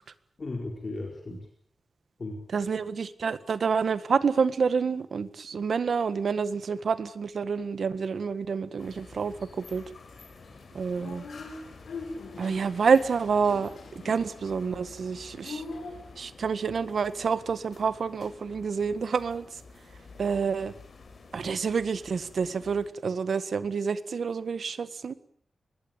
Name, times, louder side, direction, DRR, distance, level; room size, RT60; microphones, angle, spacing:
voice 1, 0.4-1.5 2.2-2.7 10.8-10.9, left 2 dB, 40° left, 1 dB, 4.5 m, -36 dB
voice 2, 2.5-9.3 9.7-9.8 10.7-11.2 12.4-13.7 14.0-15.6 16.2-19.5 20.2-20.7 21.3-25.1, right 5 dB, 65° right, 13 dB, 1.6 m, -28 dB
sound 1, 8.8-22.9, left 4 dB, 55° left, 5.7 m, -50 dB
sound 2, 10.5-16.2, left 3 dB, 90° left, 7.6 m, -43 dB
24.5 x 20.5 x 9.0 m, 0.62 s
wide cardioid pair, 165°, 0 cm